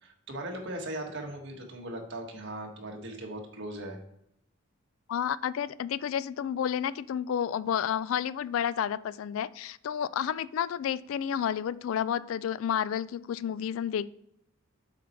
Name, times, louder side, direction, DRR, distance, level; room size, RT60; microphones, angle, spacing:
voice 1, 0.0-4.0, right 1 dB, 60° right, 2 dB, 1.5 m, -39 dB
voice 2, 5.1-14.1, left 9 dB, 70° left, 18 dB, 0.3 m, -31 dB
7.4 x 5.3 x 4.4 m, 0.77 s
head